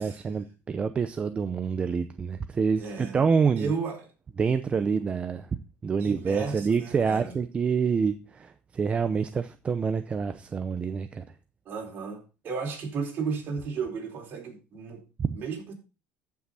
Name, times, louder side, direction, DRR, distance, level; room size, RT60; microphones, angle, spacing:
voice 1, 0.0-3.7 4.4-5.5 5.8-11.2 15.2-15.4, right 5 dB, 25° right, 0.7 m, -27 dB
voice 2, 2.8-3.2 3.6-4.0 6.0-7.4 11.6-15.0 15.3-15.7, right 5 dB, 45° right, 4.7 m, -34 dB
13.5 x 6.2 x 4.1 m
cardioid pair, 125°, 5 cm